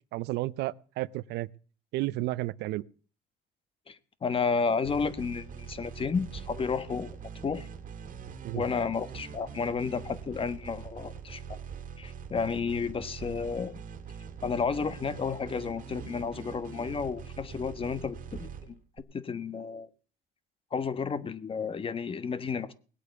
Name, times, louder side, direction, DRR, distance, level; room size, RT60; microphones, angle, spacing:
voice 1, 0.1-1.5 1.9-2.8 8.4-8.6, right 17 dB, 85° right, 0.6 m, -32 dB
voice 2, 3.9-7.1 7.4-7.7 8.5-11.6 12.0-13.8 14.4-19.9 20.7-22.7, left 5 dB, 30° left, 1.3 m, -32 dB
sound 1, 4.8-19.0, right 7 dB, 50° right, 2.0 m, -43 dB
19.5 x 8.5 x 7.0 m
cardioid pair, 110°, 17 cm